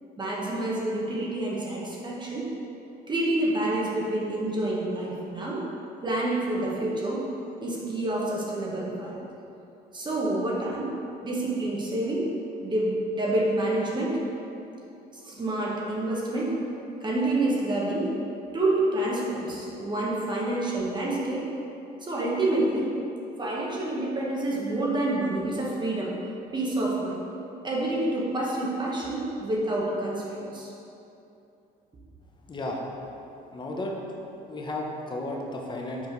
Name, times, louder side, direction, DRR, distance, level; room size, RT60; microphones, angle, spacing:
voice 1, 0.2-2.5 3.1-5.6 6.0-7.2 7.6-9.2 9.9-10.9 11.2-12.3 12.6-14.2 15.2-16.6 17.0-18.1 18.5-21.5 22.0-23.0 23.4-26.2 26.5-27.2 27.6-30.7, right 1 dB, 25° right, -4 dB, 1.2 m, -28 dB
voice 2, 32.5-33.1 33.5-34.0 34.5-36.1, left 1 dB, 25° left, 0 dB, 0.9 m, -33 dB
5.5 x 4.6 x 4.6 m, 2.8 s
cardioid pair, 110°, 17 cm